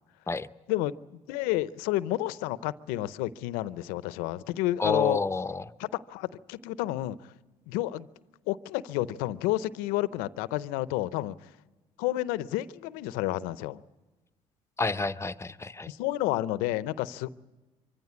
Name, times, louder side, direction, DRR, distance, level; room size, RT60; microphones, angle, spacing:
voice 1, 0.7-5.2 5.8-7.3 7.7-8.1 8.5-11.5 12.0-13.8 15.9-17.3, left 16 dB, 90° left, 0.6 m, -30 dB
voice 2, 4.8-5.7 14.8-15.9, left 3 dB, 20° left, 0.8 m, -29 dB
24.5 x 15.0 x 9.5 m
supercardioid pair, 75°, 14 cm